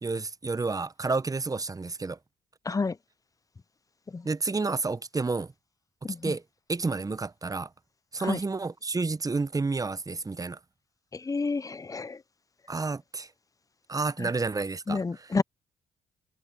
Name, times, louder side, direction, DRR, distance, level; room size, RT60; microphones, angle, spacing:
voice 1, 0.0-2.2 4.2-5.5 6.2-6.4 6.7-7.7 8.1-10.6 12.7-13.3 13.9-15.0, right 3 dB, 25° right, 0.9 m, -30 dB
voice 2, 6.0-6.3 8.2-8.4 11.1-12.2 14.2-14.3 14.9-15.4, left 4 dB, 20° left, 0.7 m, -30 dB
hypercardioid pair, 45°, 15 cm